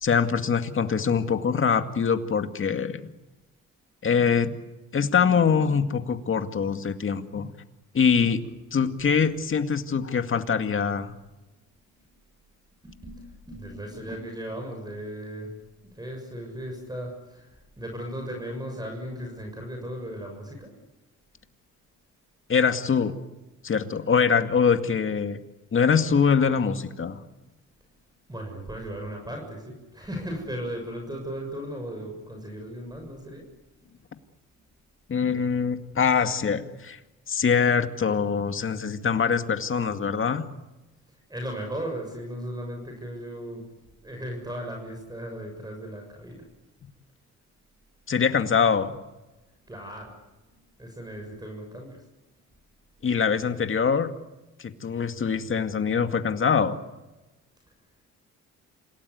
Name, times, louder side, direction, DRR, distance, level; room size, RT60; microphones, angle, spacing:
voice 1, 0.0-3.0 4.0-4.5 4.9-7.5 7.9-8.4 8.7-11.1 22.5-23.1 23.6-25.4 25.7-27.2 35.1-37.0 37.3-40.4 48.1-48.9 53.0-54.1 54.6-56.8, left 6 dB, 45° left, 8 dB, 2.2 m, -23 dB
voice 2, 12.8-15.5 15.9-20.7 28.3-33.5 41.1-43.6 44.0-46.4 49.6-50.1 50.8-52.0, equal, 15° right, 2 dB, 6.8 m, -36 dB
27.5 x 18.0 x 9.6 m, 1.1 s
cardioid pair, 90°, 30 cm